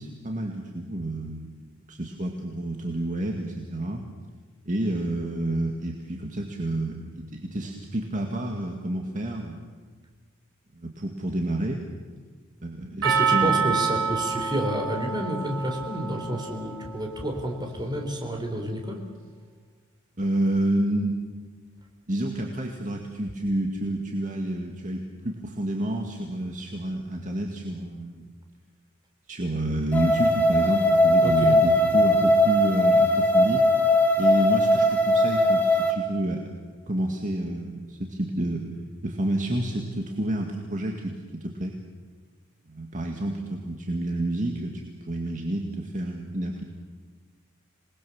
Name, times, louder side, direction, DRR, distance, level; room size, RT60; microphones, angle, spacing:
voice 1, 0.0-4.0 4.6-9.7 10.7-11.8 12.6-13.6 20.2-21.2 22.1-28.2 29.3-33.7 34.2-36.4 36.9-38.7 39.0-41.7 42.7-46.6, right 1 dB, 40° right, 2 dB, 2.0 m, -29 dB
voice 2, 13.0-19.0 31.2-31.6, equal, 20° right, 3 dB, 3.9 m, -30 dB
Percussion, 13.0-17.3, right 6 dB, 65° right, 3.1 m, -27 dB
sound 1, 29.9-35.9, left 1 dB, 10° left, 2.6 m, -20 dB
27.0 x 20.0 x 7.2 m, 1.5 s
head